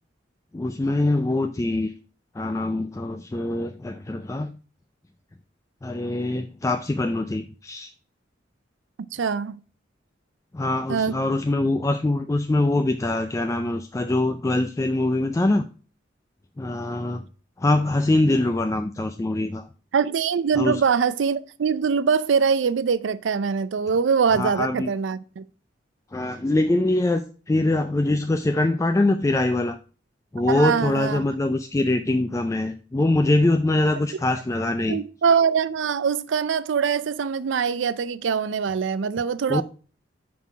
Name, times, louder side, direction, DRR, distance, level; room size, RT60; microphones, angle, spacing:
voice 1, 0.5-1.9 2.3-4.6 5.8-7.9 10.5-15.7 16.6-17.3 17.6-19.7 20.6-20.8 24.3-24.9 26.1-29.8 30.3-35.0 39.5-39.6, left 2 dB, 15° left, 0.3 m, -23 dB
voice 2, 9.1-9.6 10.9-11.2 19.9-25.4 30.5-31.2 34.9-39.6, right 6 dB, 85° right, 0.4 m, -23 dB
6.0 x 5.6 x 4.7 m
head